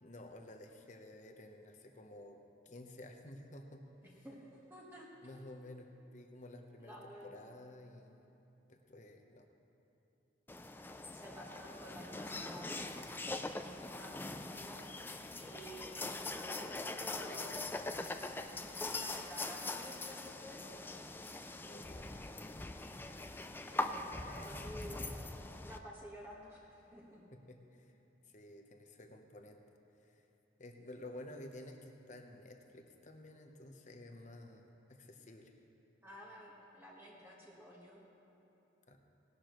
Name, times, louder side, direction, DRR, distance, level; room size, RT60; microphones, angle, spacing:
voice 1, 0.0-2.4 2.6-3.8 5.2-6.9 7.2-8.3 8.7-9.5 21.6-22.1 22.4-22.7 27.3-28.0 28.3-29.6 30.1-30.2 30.6-35.6 38.9-39.0, left 1 dB, 40° left, 4 dB, 0.9 m, -52 dB
voice 2, 4.0-5.4 6.8-7.4 11.1-12.9 14.0-14.9 15.4-17.6 18.7-20.7 23.6-25.2 25.6-27.2 36.0-38.0, equal, 10° right, -4 dB, 1.4 m, -52 dB
sound 1, 10.5-25.8, left 2 dB, 10° left, 0.3 m, -42 dB
18.5 x 11.5 x 3.1 m, 3.0 s
head